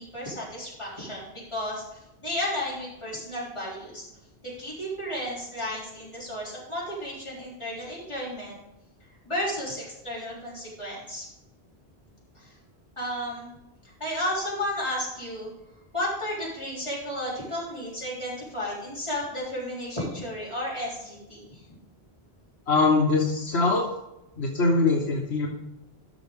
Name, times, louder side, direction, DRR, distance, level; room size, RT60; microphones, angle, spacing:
voice 1, 0.0-1.8 2.2-4.1 4.4-8.6 9.3-11.2 12.3-12.5 13.0-13.5 14.0-15.5 15.9-21.6, left 1 dB, 25° left, -6 dB, 3.9 m, -33 dB
voice 2, 22.7-23.8 24.4-25.5, left 3 dB, 80° left, -1 dB, 1.6 m, -22 dB
12.5 x 6.3 x 3.7 m, 0.91 s
omnidirectional pair, 1.1 m